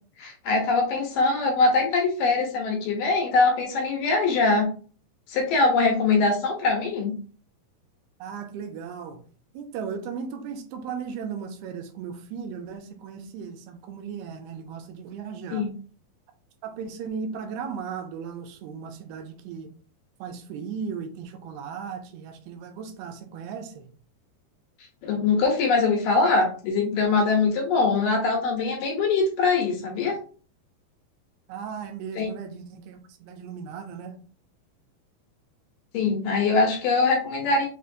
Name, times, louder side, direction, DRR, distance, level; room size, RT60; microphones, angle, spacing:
voice 1, 0.2-4.7 5.3-7.2 15.5-15.7 25.0-30.2 32.2-32.3 35.9-37.7, left 3 dB, 75° left, 2.3 m, -22 dB
voice 2, 8.2-9.2 9.5-15.7 16.6-19.7 20.2-23.9 31.5-34.2, right 6 dB, 85° right, 2.5 m, -36 dB
6.3 x 2.4 x 2.6 m
omnidirectional pair, 4.4 m